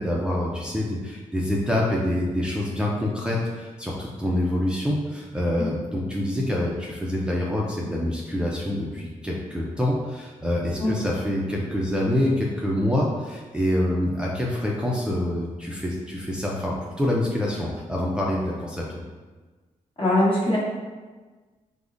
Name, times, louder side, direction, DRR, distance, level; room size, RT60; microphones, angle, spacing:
voice 1, 0.0-18.8, left 1 dB, 5° right, -4 dB, 0.4 m, -26 dB
voice 2, 20.0-20.6, left 1 dB, 40° left, -5 dB, 1.0 m, -21 dB
3.6 x 2.1 x 2.5 m, 1.3 s
cardioid pair, 65°, 13 cm